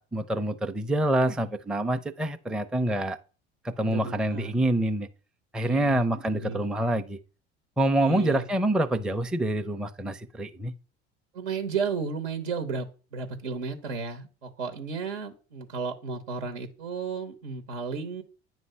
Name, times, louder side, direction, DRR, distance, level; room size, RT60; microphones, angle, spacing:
voice 1, 0.0-3.2 3.6-5.1 5.5-7.2 7.8-10.7, right 1 dB, ahead, 0.5 m, -26 dB
voice 2, 3.9-4.5 5.7-6.0 6.3-6.6 8.0-8.5 11.3-18.2, right 5 dB, 80° right, 1.0 m, -33 dB
9.2 x 3.1 x 5.4 m
hypercardioid pair, 65°, 33 cm